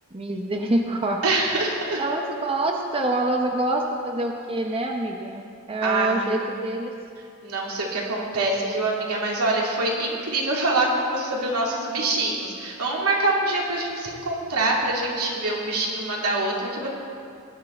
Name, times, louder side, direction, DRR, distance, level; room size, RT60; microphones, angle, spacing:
voice 1, 0.1-1.2 2.0-6.9, right 1 dB, 25° right, 2 dB, 0.8 m, -26 dB
voice 2, 1.2-2.0 5.8-6.4 7.4-16.9, right 2 dB, 90° right, -2 dB, 2.6 m, -25 dB
18.5 x 10.5 x 4.4 m, 2.4 s
head